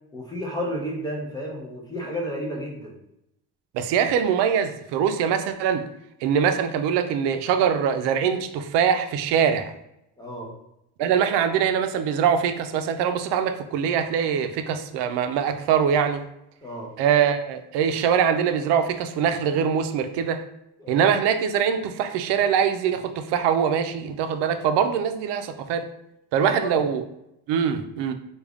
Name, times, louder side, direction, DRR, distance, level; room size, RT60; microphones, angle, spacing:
voice 1, 0.1-3.0 10.2-10.5 16.6-16.9 20.8-21.1 26.4-26.8, equal, 10° left, -2 dB, 0.4 m, -32 dB
voice 2, 3.7-5.9 6.2-9.7 11.0-16.2 17.0-20.4 20.9-25.8 26.3-27.0 27.5-28.1, right 7 dB, 85° right, 8 dB, 0.5 m, -23 dB
3.5 x 2.3 x 3.4 m, 0.84 s
cardioid pair, 175°, 40 cm